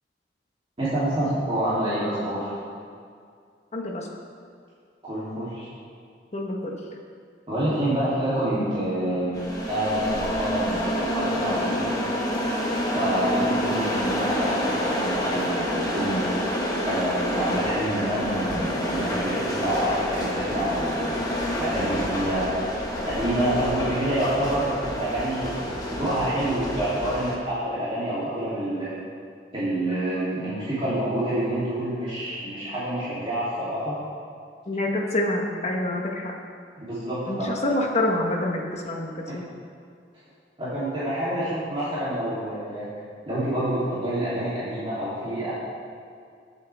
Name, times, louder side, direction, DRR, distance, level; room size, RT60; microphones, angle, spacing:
voice 1, 0.8-2.6 5.0-5.7 7.5-11.9 12.9-16.2 16.8-22.5 23.0-28.9 29.5-34.0 36.9-37.6 40.6-42.9 43.3-45.5, right 1 dB, 30° right, -11 dB, 3.2 m, -27 dB
voice 2, 3.7-4.1 6.3-6.8 34.7-36.3 37.3-39.5, left 1 dB, 40° left, 1 dB, 1.3 m, -27 dB
sound 1, 9.3-27.4, equal, 20° left, 1.5 m, -28 dB
21.5 x 7.7 x 3.5 m, 2.2 s
head